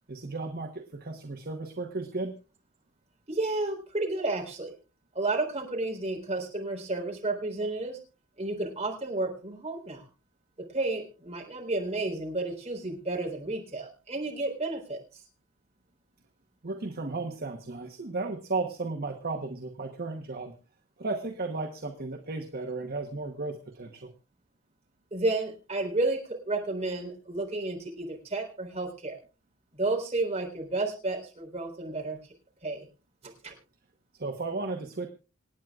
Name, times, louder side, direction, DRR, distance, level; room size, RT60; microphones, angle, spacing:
voice 1, 0.1-2.3 16.6-20.6 21.0-24.1 34.1-35.1, right 3 dB, 45° right, 4 dB, 1.1 m, -34 dB
voice 2, 3.3-4.7 5.1-8.0 8.4-10.1 10.6-15.2 25.1-29.2 29.7-32.3 32.6-32.9 33.4-33.5, right 2 dB, 30° right, 0 dB, 3.9 m, -31 dB
27.0 x 9.2 x 2.4 m, 0.32 s
head